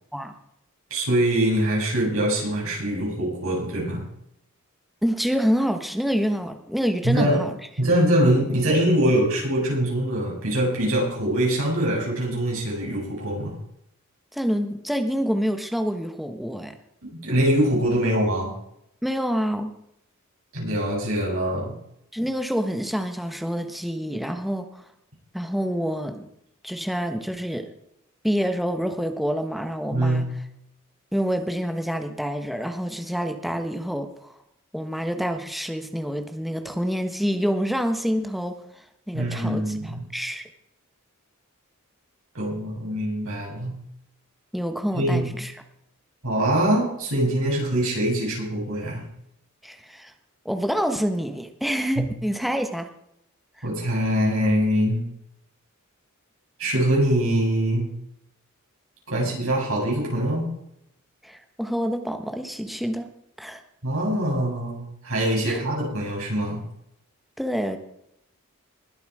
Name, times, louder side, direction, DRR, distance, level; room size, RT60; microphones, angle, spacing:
voice 1, 0.9-4.1 7.0-7.4 7.8-13.5 17.0-18.5 20.5-21.8 29.9-30.3 39.1-40.1 42.3-43.8 44.9-45.3 46.2-49.0 52.0-52.1 53.6-55.1 56.6-57.9 59.1-60.5 63.8-66.6, right 1 dB, 70° right, -3 dB, 6.9 m, -23 dB
voice 2, 5.0-7.5 14.3-16.8 19.0-19.7 22.1-24.8 25.3-26.3 26.6-27.6 28.2-30.2 31.1-34.3 34.7-39.8 40.1-40.5 44.5-45.6 49.6-50.1 50.4-52.9 61.2-63.1 63.4-63.6 65.5-65.6 67.4-67.8, equal, ahead, 6 dB, 1.1 m, -27 dB
20.5 x 8.1 x 4.9 m, 0.75 s
head